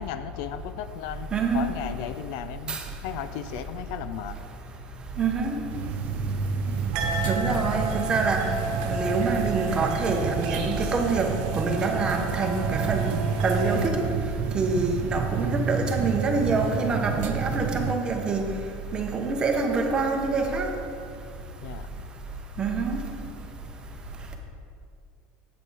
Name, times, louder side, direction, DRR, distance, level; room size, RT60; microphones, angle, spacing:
voice 1, 0.0-4.4 6.7-6.8 21.6-21.9, left 10 dB, 60° left, 12 dB, 0.4 m, -35 dB
voice 2, 1.3-1.7 2.7-2.8 5.2-5.6 7.3-8.4 8.8-14.0 14.5-18.4 18.9-20.7 22.6-23.0, right 4 dB, 20° right, 2 dB, 0.9 m, -26 dB
sound 1, 5.7-17.9, right 6 dB, 35° right, 0.5 m, -30 dB
sound 2, 6.9-13.9, right 3 dB, 65° right, 1.0 m, -33 dB
7.9 x 7.6 x 4.8 m, 2.4 s
cardioid pair, 165°, 5 cm